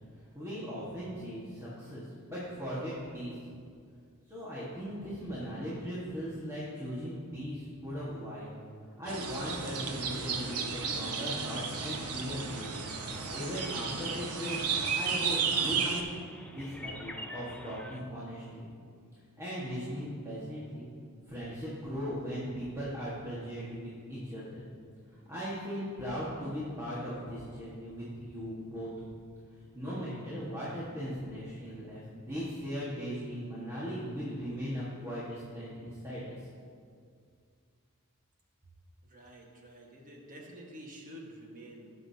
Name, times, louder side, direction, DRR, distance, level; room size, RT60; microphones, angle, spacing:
voice 1, 0.3-3.3 4.3-8.5 9.0-12.8 13.3-14.6 14.9-16.0 16.5-18.7 19.4-20.9 21.3-24.6 25.3-28.9 29.7-36.3, equal, 15° right, -10 dB, 1.6 m, -38 dB
sound 1, 9.1-16.0, right 5 dB, 90° right, 0.9 m, -33 dB
sound 2, 12.5-18.0, left 1 dB, 5° left, 0.4 m, -49 dB
voice 2, 39.0-41.9, equal, 40° right, -1 dB, 1.5 m, -49 dB
17.5 x 6.2 x 2.8 m, 2.2 s
head